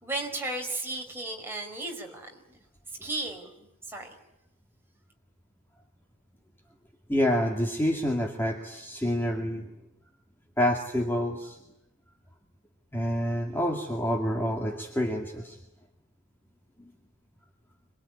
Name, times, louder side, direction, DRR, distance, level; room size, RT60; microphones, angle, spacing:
voice 1, 0.0-2.6 3.0-4.1, right 2 dB, 10° right, 1 dB, 5.0 m, -35 dB
voice 2, 7.1-9.7 10.6-11.6 12.9-15.6 16.8-16.9, equal, 10° left, 1 dB, 2.3 m, -28 dB
27.0 x 22.0 x 9.9 m, 0.86 s
head